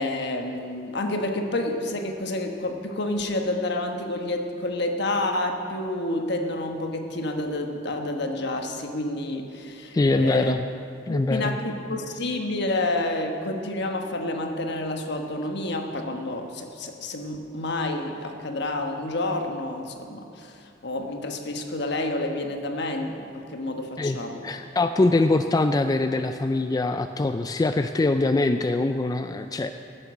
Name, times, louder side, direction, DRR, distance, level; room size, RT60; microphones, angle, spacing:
voice 1, 0.0-10.6 11.1-24.4, left 2 dB, 65° left, 4 dB, 1.2 m, -29 dB
voice 2, 9.9-10.7 11.1-11.6 24.0-29.7, left 2 dB, 20° left, 8 dB, 0.3 m, -23 dB
14.5 x 9.1 x 6.2 m, 2.5 s
head